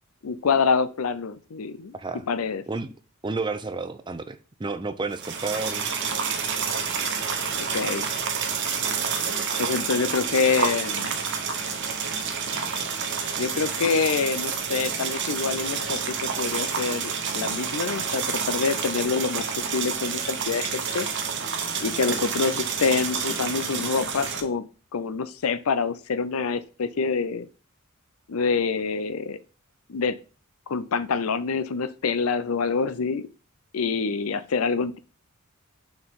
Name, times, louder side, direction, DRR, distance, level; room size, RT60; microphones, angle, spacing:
voice 1, 0.2-1.9 2.3-2.6 7.7-8.0 9.6-11.2 13.4-21.1 21.8-24.7 24.9-27.5 28.3-29.4 29.9-30.2 30.7-33.3 33.7-35.0, left 5 dB, 75° left, 13 dB, 0.5 m, -26 dB
voice 2, 1.9-2.2 2.7-2.9 3.2-5.9, right 3 dB, 20° right, 10 dB, 0.5 m, -31 dB
sound 1, 5.1-24.4, right 6 dB, 60° right, 1.1 m, -29 dB
6.7 x 4.4 x 3.7 m, 0.34 s
head